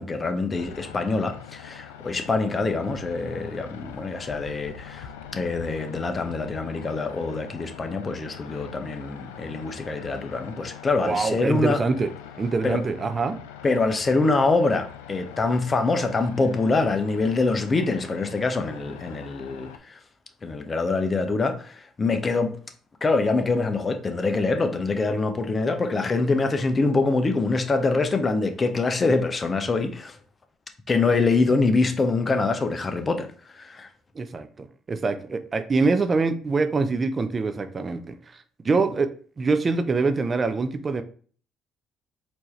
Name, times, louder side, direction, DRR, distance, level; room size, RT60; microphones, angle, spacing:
voice 1, 0.0-5.1 5.3-11.8 12.6-12.8 13.6-20.0 20.4-22.5 23.0-30.2 30.9-33.9, left 3 dB, 35° left, 0.7 m, -24 dB
sound 1, 0.5-19.8, left 9 dB, 90° left, 0.3 m, -43 dB
voice 2, 11.0-12.1 12.4-13.4 34.2-38.1 38.6-39.1 39.4-41.0, right 4 dB, 35° right, 0.5 m, -24 dB
4.4 x 2.8 x 3.1 m
hypercardioid pair, 60°, 0 cm